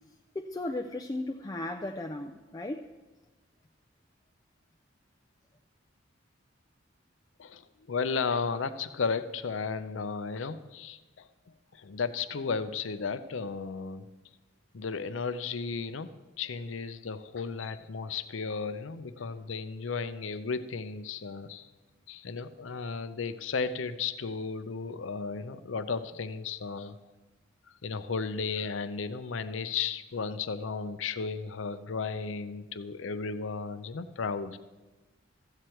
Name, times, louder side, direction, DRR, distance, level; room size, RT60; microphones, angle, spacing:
voice 1, 0.3-2.9, left 2 dB, 20° left, 3 dB, 0.4 m, -35 dB
voice 2, 7.4-14.1 14.7-21.7 22.1-27.0 27.8-34.6, left 5 dB, 75° left, 12 dB, 0.6 m, -34 dB
14.0 x 7.9 x 4.4 m, 1.2 s
head